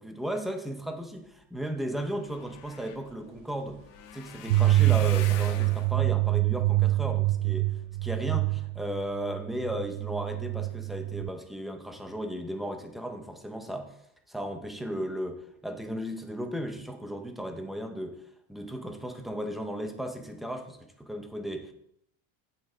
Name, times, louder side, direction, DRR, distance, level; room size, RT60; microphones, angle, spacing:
voice 1, 0.0-3.8 4.1-7.7 8.0-13.9 14.3-18.2 18.5-21.7, equal, ahead, 5 dB, 0.5 m, -35 dB
sound 1, 1.5-1.6 1.9-8.2 8.8-9.2 9.7-9.9 10.1-10.2, left 8 dB, 50° left, 1.3 m, -46 dB
sound 2, 4.5-11.3, right 18 dB, 70° right, 0.5 m, -26 dB
8.9 x 8.3 x 3.9 m, 0.72 s
cardioid pair, 165°, 42 cm